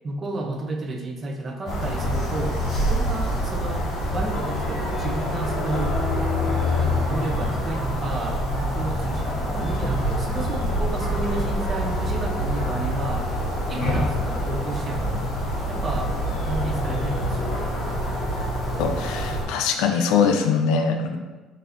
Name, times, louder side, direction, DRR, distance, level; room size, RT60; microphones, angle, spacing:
voice 1, 0.0-6.0 6.8-13.3 13.7-15.2 15.7-16.1 16.5-17.8, right 2 dB, 30° right, 3 dB, 0.6 m, -32 dB
sound 1, 1.7-19.4, equal, 50° left, 1.4 m, -26 dB
voice 2, 18.8-21.2, left 6 dB, 80° left, 5 dB, 0.4 m, -22 dB
4.0 x 2.7 x 3.9 m, 1.2 s
cardioid pair, 125°, 0 cm